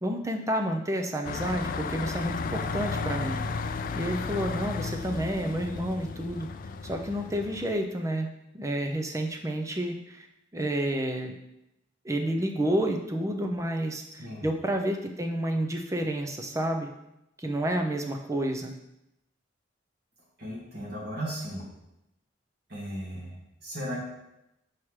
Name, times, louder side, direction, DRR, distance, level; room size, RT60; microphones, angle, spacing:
voice 1, 0.0-3.4 3.9-6.5 6.8-8.3 8.5-10.3 10.5-11.3 12.0-16.9 17.4-18.7, right 1 dB, 15° right, 4 dB, 0.5 m, -30 dB
sound 1, 1.2-7.7, left 4 dB, 45° left, 0.3 m, -33 dB
voice 2, 20.4-21.6 22.7-24.0, equal, 55° right, -5 dB, 2.0 m, -36 dB
7.3 x 4.6 x 3.2 m, 0.87 s
head